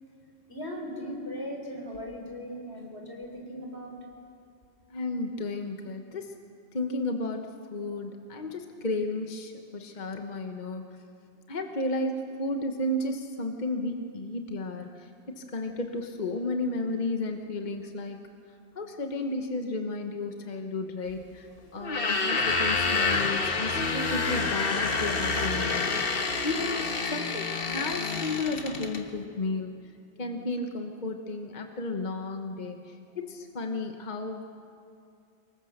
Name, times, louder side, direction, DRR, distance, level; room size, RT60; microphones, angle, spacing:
voice 1, 0.5-3.9 17.3-17.4, equal, 85° left, 1 dB, 4.0 m, -38 dB
voice 2, 4.9-6.3 6.7-10.8 11.5-18.2 18.7-21.5 21.7-29.7 30.2-34.4, left 2 dB, 45° left, 4 dB, 1.3 m, -33 dB
sound 1, 21.8-29.0, left 4 dB, 60° left, 1.5 m, -28 dB
24.5 x 21.5 x 6.6 m, 2.4 s
omnidirectional pair, 1.1 m